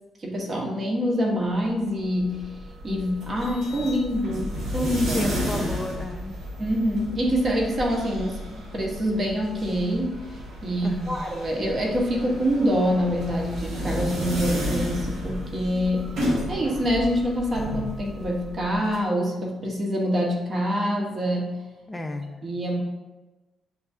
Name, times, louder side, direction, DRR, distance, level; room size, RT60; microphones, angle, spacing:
voice 1, 0.2-2.5 2.8-5.3 5.6-5.7 6.6-8.4 8.7-10.2 10.6-21.5 22.4-22.8, equal, 40° right, -1 dB, 1.1 m, -25 dB
sound 1, 1.9-19.0, equal, 70° right, 1.1 m, -32 dB
voice 2, 5.1-6.4 10.8-11.3 21.9-22.5, left 1 dB, 15° left, 5 dB, 0.4 m, -32 dB
7.7 x 2.7 x 2.4 m, 1.1 s
cardioid pair, 90°, 0 cm